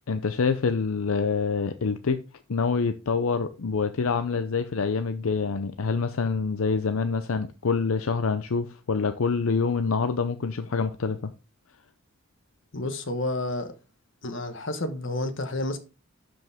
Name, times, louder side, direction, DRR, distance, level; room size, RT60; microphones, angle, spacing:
voice 1, 0.1-2.2 2.5-11.2, left 4 dB, 85° left, 0.6 m, -26 dB
voice 2, 12.7-13.7 14.2-15.8, left 2 dB, 65° left, 1.3 m, -30 dB
12.0 x 5.2 x 3.5 m
head